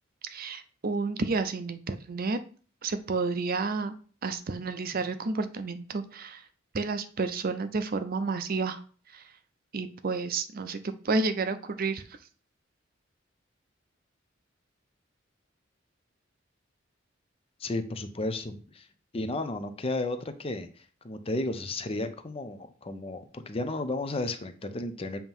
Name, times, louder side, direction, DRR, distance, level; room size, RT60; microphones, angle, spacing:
voice 1, 0.2-2.4 2.8-3.9 4.2-6.5 6.7-9.4 9.7-12.3, right 4 dB, 50° right, 10 dB, 0.5 m, -31 dB
voice 2, 17.6-18.9 19.1-20.7 21.0-25.2, left 2 dB, 30° left, 9 dB, 0.6 m, -33 dB
7.2 x 3.0 x 5.4 m, 0.42 s
head